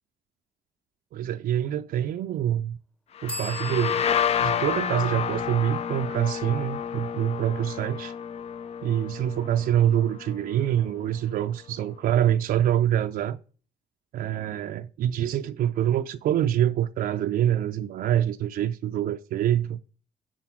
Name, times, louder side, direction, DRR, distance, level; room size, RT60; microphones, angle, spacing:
voice 1, 1.1-2.8 3.2-4.0 4.4-8.1 8.8-13.4 14.1-19.8, right 11 dB, 75° right, 0.5 m, -25 dB
sound 1, 3.2-10.7, left 8 dB, 45° left, 0.4 m, -30 dB
sound 2, 3.3-6.8, left 1 dB, 5° left, 0.8 m, -43 dB
10.0 x 3.9 x 6.0 m
cardioid pair, 130°, 15 cm